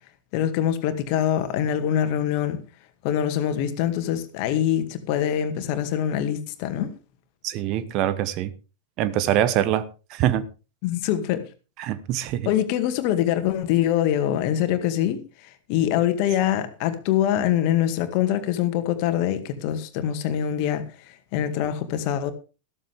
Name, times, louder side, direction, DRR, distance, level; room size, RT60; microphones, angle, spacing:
voice 1, 0.3-2.6 3.0-6.9 10.8-11.5 12.5-22.3, left 10 dB, 45° left, 2.1 m, -24 dB
voice 2, 7.4-8.5 9.0-10.4 11.8-12.5, right 11 dB, 40° right, 1.1 m, -24 dB
14.5 x 13.5 x 3.6 m
figure-of-eight pair, 90°, 0 cm